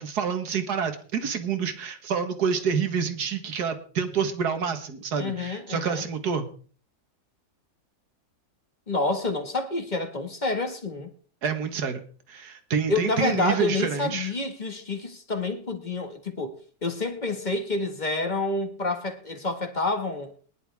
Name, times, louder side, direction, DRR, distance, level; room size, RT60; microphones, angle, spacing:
voice 1, 0.0-6.5 11.4-12.0 12.3-14.3, right 6 dB, 80° right, 2.0 m, -28 dB
voice 2, 5.2-6.0 8.9-11.1 12.9-16.6 16.8-20.3, left 3 dB, 30° left, 1.9 m, -28 dB
21.0 x 11.0 x 3.6 m
omnidirectional pair, 1.7 m